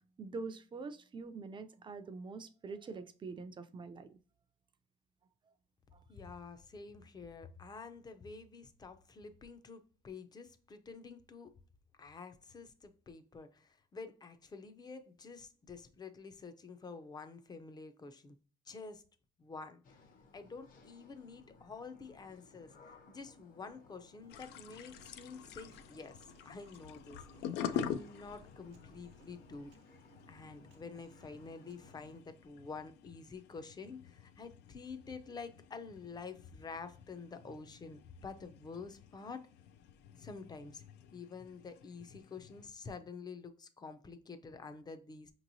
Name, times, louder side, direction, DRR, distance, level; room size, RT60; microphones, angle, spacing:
voice 1, 0.2-4.1, right 4 dB, 30° right, 9 dB, 0.4 m, -44 dB
voice 2, 6.1-11.5 12.0-18.4 18.7-19.0 19.4-20.0 20.3-22.8 23.1-27.2 27.7-30.0 30.3-39.4 40.2-40.8 41.1-45.3, left 4 dB, 25° left, 9 dB, 0.5 m, -49 dB
sound 1, 19.8-32.2, left 3 dB, 55° left, 0.9 m, -62 dB
Human voice, 24.2-32.2, right 7 dB, 80° right, 0.9 m, -65 dB
sound 2, 24.3-42.7, left 8 dB, 80° left, 0.4 m, -47 dB
5.2 x 3.0 x 2.6 m, 0.39 s
cardioid pair, 110°, 17 cm